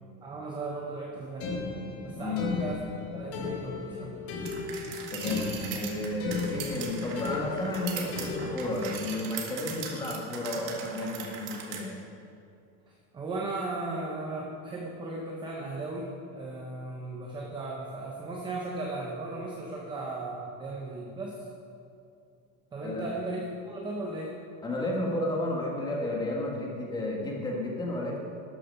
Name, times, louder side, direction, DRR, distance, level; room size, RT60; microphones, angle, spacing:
voice 1, 0.2-1.5 2.0-2.8 3.1-4.2 12.9-21.4 22.7-24.4, right 2 dB, 10° right, -1 dB, 0.7 m, -36 dB
sound 1, 1.4-9.1, left 4 dB, 35° left, 1.4 m, -36 dB
voice 2, 2.1-2.6 5.1-11.9 22.8-23.0 24.6-28.2, left 1 dB, 10° left, -2 dB, 1.6 m, -32 dB
sound 2, 4.5-11.8, right 6 dB, 55° right, 1.8 m, -40 dB
13.0 x 9.0 x 5.5 m, 2.5 s
cardioid pair, 175°, 40 cm